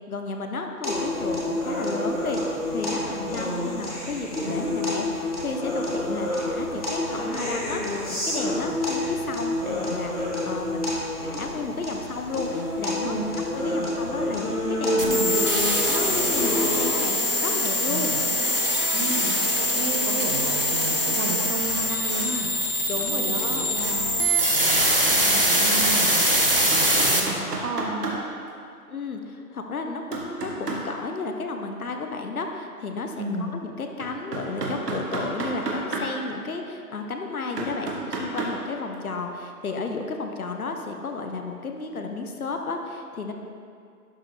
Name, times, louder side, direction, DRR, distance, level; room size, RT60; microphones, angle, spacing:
voice 1, 0.1-10.9 11.2-13.2 13.5-18.1 22.9-23.6 28.9-43.3, left 3 dB, 65° left, 4 dB, 0.9 m, -33 dB
sound 1, 0.8-16.8, left 1 dB, 25° left, 1.4 m, -28 dB
voice 2, 3.4-3.8 13.0-13.2 13.6-13.8 15.0-15.4 17.9-18.3 18.9-22.5 23.0-24.0 24.5-26.2 26.7-28.0 33.2-33.5, right 2 dB, 60° right, 1 dB, 1.1 m, -33 dB
sound 2, 15.0-27.2, equal, 40° right, 0.5 m, -23 dB
sound 3, 26.7-28.2 30.1-30.8 34.0-36.1 36.9-37.0 37.6-38.5 41.8-41.9, right 3 dB, 85° right, 1.6 m, -30 dB
11.5 x 5.1 x 3.2 m, 2.4 s
hypercardioid pair, 175°, 47 cm